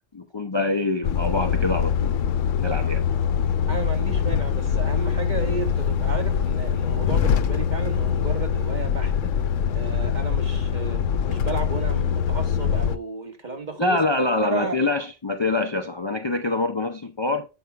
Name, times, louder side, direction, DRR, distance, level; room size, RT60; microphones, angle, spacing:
voice 1, 0.1-2.3 2.6-3.0 13.8-17.5, left 2 dB, 30° left, 0.6 m, -25 dB
Truck, 1.0-13.0, left 7 dB, 85° left, 1.0 m, -23 dB
voice 2, 3.7-9.3 9.7-11.0 11.3-14.0 14.4-14.8, right 3 dB, 40° right, 1.6 m, -33 dB
8.0 x 5.4 x 4.5 m
omnidirectional pair, 1.3 m